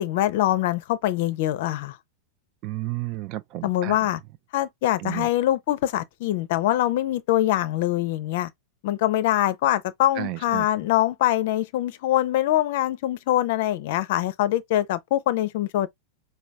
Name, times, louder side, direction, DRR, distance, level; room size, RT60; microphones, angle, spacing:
voice 1, 0.0-2.0 3.6-4.2 4.5-8.5 8.8-15.9, left 13 dB, 50° left, 0.5 m, -23 dB
voice 2, 2.6-3.9 5.0-5.3 10.2-10.7, right 17 dB, 40° right, 0.4 m, -32 dB
5.0 x 2.3 x 3.3 m
figure-of-eight pair, 90°, 0 cm